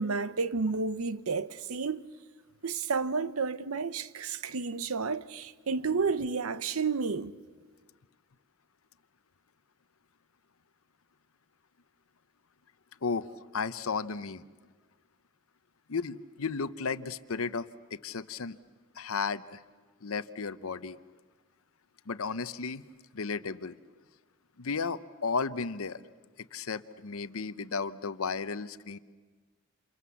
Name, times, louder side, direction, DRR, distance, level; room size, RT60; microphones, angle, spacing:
voice 1, 0.0-2.0 2.6-7.3, right 4 dB, 80° right, 0.8 m, -31 dB
voice 2, 13.0-14.4 15.9-18.6 18.9-19.6 20.0-21.0 22.1-22.8 23.1-23.7 24.6-26.0 26.4-29.0, left 5 dB, 70° left, 0.8 m, -34 dB
28.5 x 27.5 x 7.1 m
head